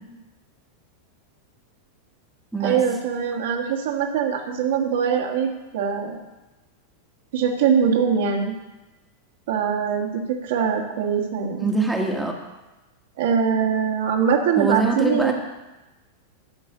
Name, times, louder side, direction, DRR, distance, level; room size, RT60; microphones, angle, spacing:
voice 1, 2.6-6.2 7.3-8.5 9.5-11.7 13.2-15.3, right 7 dB, 55° right, 2 dB, 1.7 m, -22 dB
voice 2, 11.6-12.4 14.6-15.3, right 3 dB, 5° right, 1 dB, 1.4 m, -23 dB
12.5 x 5.6 x 6.8 m, 1.1 s
figure-of-eight pair, 90°, 0 cm